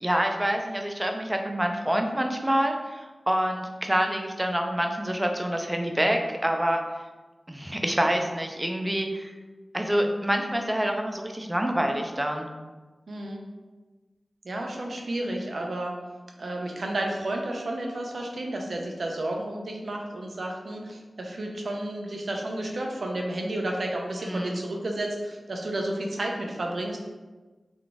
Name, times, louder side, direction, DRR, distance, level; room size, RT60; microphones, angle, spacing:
voice 1, 0.0-6.8 7.5-9.3 9.7-12.5 24.3-24.6, equal, 15° right, 3 dB, 0.4 m, -26 dB
voice 2, 13.1-13.4 14.4-15.9 16.4-27.0, right 1 dB, 75° right, 1 dB, 0.6 m, -31 dB
3.8 x 2.4 x 3.4 m, 1.3 s
wide cardioid pair, 95°, 0 cm